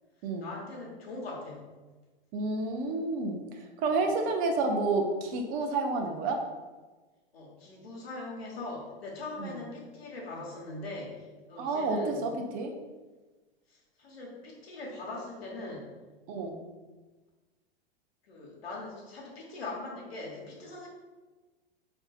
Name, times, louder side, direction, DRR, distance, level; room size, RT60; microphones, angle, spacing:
voice 1, 0.4-1.6 4.0-4.1 7.3-12.2 13.7-15.9 18.3-20.9, left 2 dB, 90° left, -2 dB, 1.1 m, -41 dB
voice 2, 2.3-3.4 3.8-6.4 9.4-9.6 11.6-12.7 16.3-16.6, right 3 dB, 30° right, 3 dB, 0.4 m, -30 dB
4.4 x 2.5 x 2.4 m, 1.3 s
hypercardioid pair, 125°, 30 cm